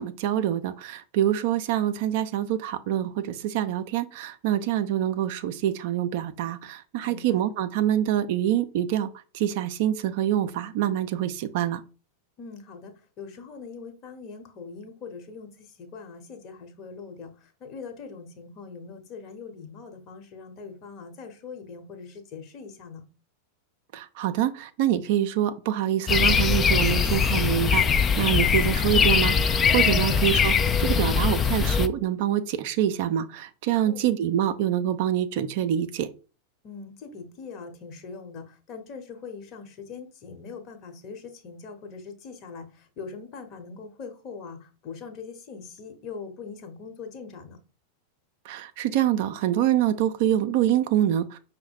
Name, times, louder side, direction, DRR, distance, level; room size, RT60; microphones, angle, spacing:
voice 1, 0.0-9.1 9.3-11.8 23.9-36.1 48.5-51.4, right 11 dB, 50° right, 0.4 m, -25 dB
voice 2, 7.0-7.4 12.4-15.5 15.8-17.3 17.6-23.0 29.9-30.1 33.8-34.1 36.6-47.6, left 5 dB, 35° left, 1.0 m, -42 dB
sound 1, 26.1-31.9, left 6 dB, 20° left, 0.3 m, -22 dB
5.4 x 2.1 x 4.6 m
figure-of-eight pair, 90°, 0 cm